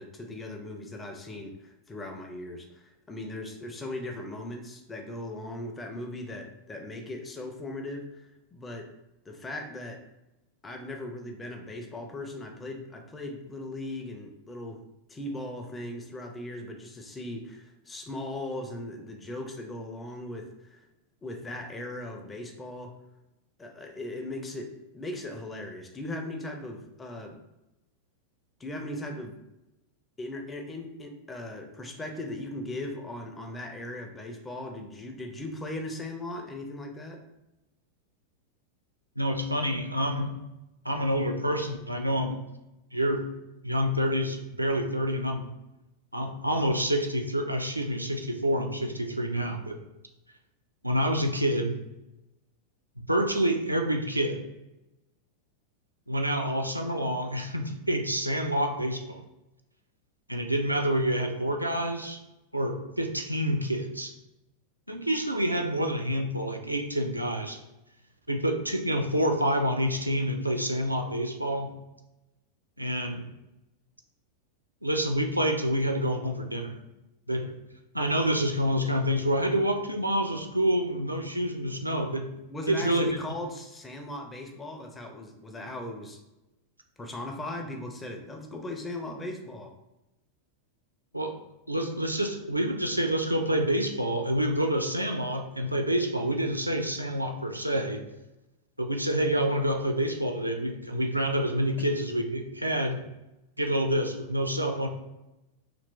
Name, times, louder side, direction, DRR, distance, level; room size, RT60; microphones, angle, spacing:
voice 1, 0.0-8.9 9.3-10.0 10.6-20.9 21.2-22.9 23.6-27.4 28.6-29.4 30.2-37.3 82.5-86.2 87.0-89.7, left 1 dB, 15° left, 3 dB, 0.4 m, -38 dB
voice 2, 39.2-40.3 40.8-42.4 42.9-43.3 43.6-45.5 46.1-49.8 50.8-51.8 53.0-54.4 56.1-59.2 60.3-62.2 62.5-64.1 64.9-67.6 68.3-71.7 72.8-73.3 74.8-76.8 77.3-77.5 77.9-82.3 82.7-83.1 91.1-91.4 91.7-98.0 98.8-103.0 103.6-104.9, equal, 85° right, 4 dB, 0.4 m, -27 dB
2.9 x 2.5 x 3.1 m, 0.95 s
figure-of-eight pair, 90°, 0 cm